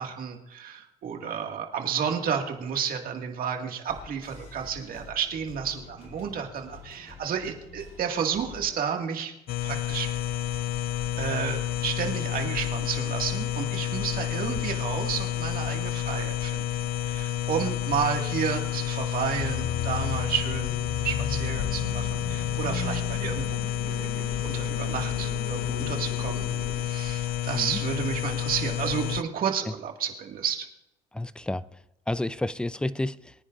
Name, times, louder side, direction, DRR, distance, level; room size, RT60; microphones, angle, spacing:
voice 1, 0.0-9.3 9.6-10.1 11.2-16.7 17.0-23.5 23.8-26.5 26.8-30.7, right 7 dB, 60° right, 3 dB, 2.1 m, -31 dB
sound 1, 3.9-8.9, left 4 dB, 40° left, 2.9 m, -48 dB
sound 2, 9.5-29.2, left 11 dB, 60° left, 0.5 m, -30 dB
sound 3, 19.2-26.9, left 5 dB, 75° left, 4.2 m, -36 dB
voice 2, 27.5-27.8 31.1-31.6 32.1-33.3, left 1 dB, 5° left, 16 dB, 0.5 m, -30 dB
23.5 x 9.9 x 2.6 m, 0.88 s
cardioid pair, 110°, 17 cm